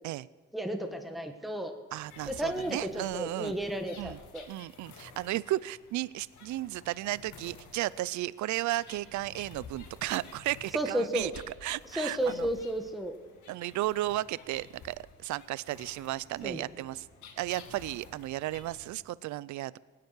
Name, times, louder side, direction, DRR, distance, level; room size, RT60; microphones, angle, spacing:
voice 1, 0.5-1.7 2.2-4.5 10.7-11.3 11.9-13.2 16.4-16.6, right 1 dB, ahead, 5 dB, 1.5 m, -33 dB
sound 1, 1.9-18.9, left 5 dB, 75° left, 2.2 m, -52 dB
voice 2, 1.9-3.5 4.0-4.2 4.5-11.3 11.6-12.5 13.5-17.1 17.4-19.8, right 16 dB, 70° right, 21 dB, 0.5 m, -34 dB
17.5 x 9.9 x 8.1 m, 1.3 s
cardioid pair, 90°, 30 cm